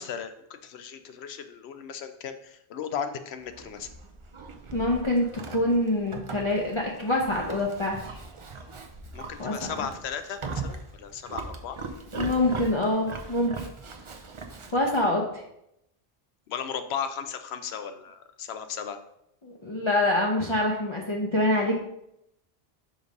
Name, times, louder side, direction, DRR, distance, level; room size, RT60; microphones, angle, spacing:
voice 1, 0.0-3.9 9.1-11.8 16.5-19.0, left 7 dB, 90° left, 9 dB, 0.9 m, -36 dB
Livestock farm animals working animals, 3.4-15.1, right 4 dB, 40° right, 0.5 m, -40 dB
voice 2, 4.7-5.3 5.5-8.2 9.4-9.8 12.2-13.5 14.7-15.4 19.4-21.8, left 1 dB, 30° left, -3 dB, 0.7 m, -25 dB
5.1 x 3.9 x 5.2 m, 0.80 s
omnidirectional pair, 1.0 m